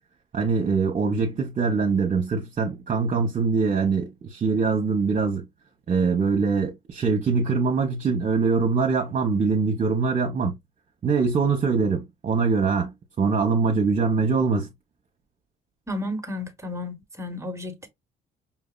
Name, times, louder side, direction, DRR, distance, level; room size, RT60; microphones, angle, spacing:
voice 1, 0.3-5.5 5.9-10.6 11.0-14.7, right 4 dB, 40° right, 1.1 m, -23 dB
voice 2, 15.9-17.9, left 1 dB, 15° right, 1.3 m, -32 dB
5.8 x 2.7 x 2.4 m
cardioid pair, 90°, 20 cm